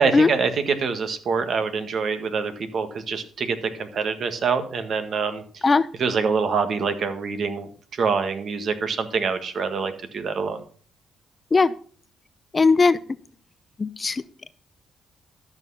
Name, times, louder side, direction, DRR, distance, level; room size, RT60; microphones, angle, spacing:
voice 1, 0.0-5.6 6.0-10.6, right 5 dB, 55° right, 8 dB, 1.7 m, -25 dB
voice 2, 12.5-13.0 13.8-14.2, left 4 dB, 30° left, 15 dB, 0.6 m, -18 dB
12.5 x 6.6 x 5.6 m, 0.43 s
cardioid pair, 90°, 0 cm